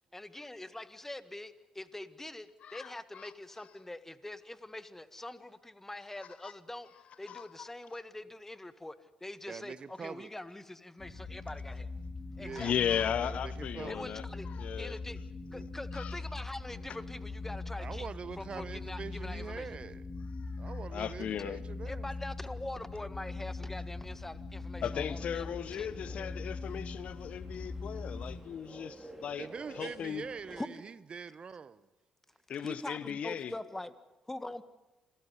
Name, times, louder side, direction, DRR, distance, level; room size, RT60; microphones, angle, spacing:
voice 1, 0.1-6.9 7.2-9.0 9.2-11.9 12.4-12.8 13.9-14.5 14.8-15.2 15.5-18.1 18.4-19.7 21.9-26.0 30.6-30.7 32.6-33.9 34.3-34.6, left 1 dB, 15° left, 1.7 m, -43 dB
voice 2, 2.6-3.3 6.4-6.5 7.3-7.4 12.6-14.9 15.9-16.1 20.9-21.6 24.8-29.5 29.8-30.2 32.5-33.5, left 8 dB, 60° left, 1.0 m, -36 dB
voice 3, 9.5-10.3 12.4-12.8 13.2-14.1 15.5-15.7 17.8-20.0 20.6-22.1 29.4-31.9, right 6 dB, 45° right, 1.0 m, -44 dB
sound 1, 11.0-28.4, left 3 dB, 45° left, 3.4 m, -41 dB
sound 2, 25.1-30.6, right 1 dB, 10° right, 4.5 m, -52 dB
26.5 x 15.0 x 9.8 m
hypercardioid pair, 50°, 2 cm